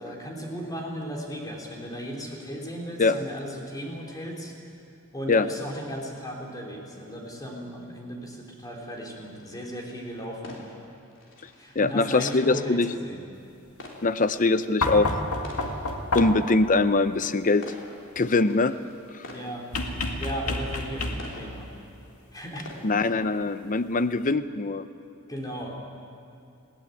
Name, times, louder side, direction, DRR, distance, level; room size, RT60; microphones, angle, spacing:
voice 1, 0.0-4.5 5.1-10.7 11.6-13.2 19.3-19.7 20.2-21.7 22.3-22.7 25.3-25.8, equal, 20° left, -1 dB, 3.5 m, -36 dB
sound 1, 8.8-23.9, left 1 dB, 60° left, 3.5 m, -49 dB
voice 2, 11.8-12.9 14.0-15.1 16.1-17.7 18.2-18.7 22.8-24.9, left 3 dB, 40° left, 12 dB, 0.7 m, -22 dB
sound 2, 14.8-16.6 19.7-21.5 23.0-23.1, left 2 dB, 90° left, 2.1 m, -29 dB
21.5 x 16.0 x 9.2 m, 2.6 s
head